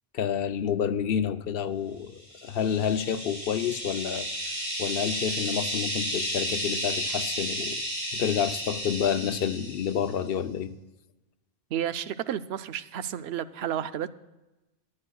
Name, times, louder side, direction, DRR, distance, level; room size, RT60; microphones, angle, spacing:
voice 1, 0.1-4.3 4.8-7.8 8.1-10.7, left 8 dB, 70° left, 12 dB, 0.8 m, -29 dB
sound 1, 2.3-10.1, equal, 70° right, 4.6 m, -33 dB
voice 2, 11.7-14.1, right 10 dB, 85° right, 13 dB, 0.8 m, -31 dB
19.0 x 9.6 x 2.3 m, 1.0 s
omnidirectional pair, 1.0 m